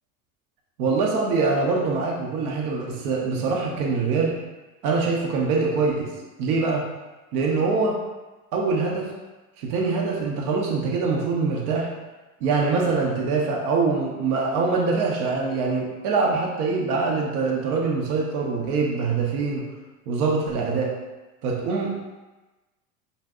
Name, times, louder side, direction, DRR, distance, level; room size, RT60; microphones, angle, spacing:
voice 1, 0.8-4.4 4.8-6.1 6.4-6.8 7.3-8.0 8.5-9.1 9.6-11.9 12.4-19.6 20.1-20.9 21.4-21.9, right 4 dB, 75° right, -1 dB, 0.8 m, -24 dB
5.2 x 2.2 x 2.4 m, 1.1 s
hypercardioid pair, 90°, 45 cm